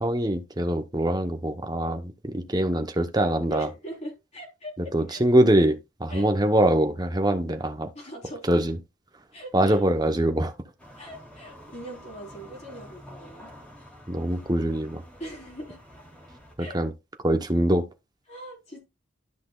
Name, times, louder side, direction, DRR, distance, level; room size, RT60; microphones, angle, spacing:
voice 1, 0.0-3.7 4.8-7.9 8.5-8.8 9.5-10.5 14.1-15.0 16.6-16.9 17.2-17.9, right 1 dB, 20° right, 0.9 m, -23 dB
voice 2, 3.5-5.2 6.1-6.3 7.9-8.6 9.3-9.9 11.0-13.5 15.2-15.8 16.6-16.8 18.3-18.8, right 1 dB, 35° left, 4.0 m, -41 dB
sound 1, 10.8-16.5, equal, 5° left, 3.1 m, -48 dB
12.5 x 5.9 x 2.4 m
head